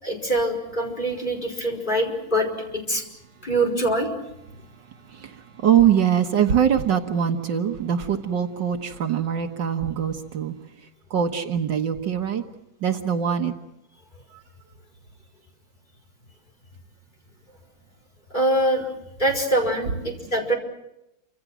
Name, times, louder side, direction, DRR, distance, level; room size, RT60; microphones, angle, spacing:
voice 1, 0.0-3.0 3.4-4.1 18.3-18.8 19.2-20.5, right 1 dB, 25° left, 2 dB, 5.4 m, -24 dB
voice 2, 5.1-10.5 11.1-12.4 12.8-13.5, right 9 dB, 70° right, 5 dB, 1.9 m, -23 dB
29.0 x 26.5 x 6.1 m, 0.87 s
omnidirectional pair, 2.1 m